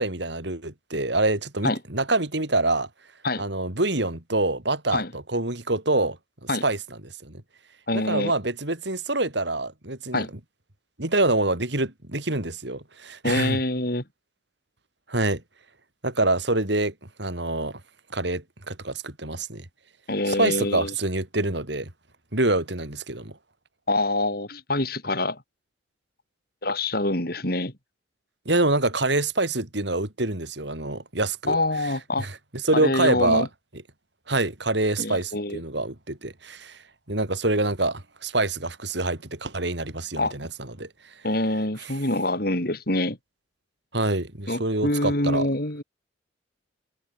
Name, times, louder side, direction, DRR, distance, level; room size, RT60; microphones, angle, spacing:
voice 1, 0.0-2.9 3.4-6.2 6.4-7.4 7.9-10.3 11.0-13.6 15.1-15.4 16.0-16.9 17.2-17.8 18.1-19.7 20.3-21.9 22.3-23.4 28.5-31.6 31.8-31.9 32.2-33.5 34.3-36.8 37.1-40.9 43.9-45.5, right 2 dB, 65° right, 3.6 m, -26 dB
voice 2, 7.9-8.3 10.1-10.3 13.2-14.0 20.1-20.9 23.9-25.4 26.6-27.7 31.5-32.3 32.7-33.5 35.0-35.6 40.2-40.3 41.2-43.2 44.5-45.8, left 2 dB, 50° left, 4.7 m, -25 dB
head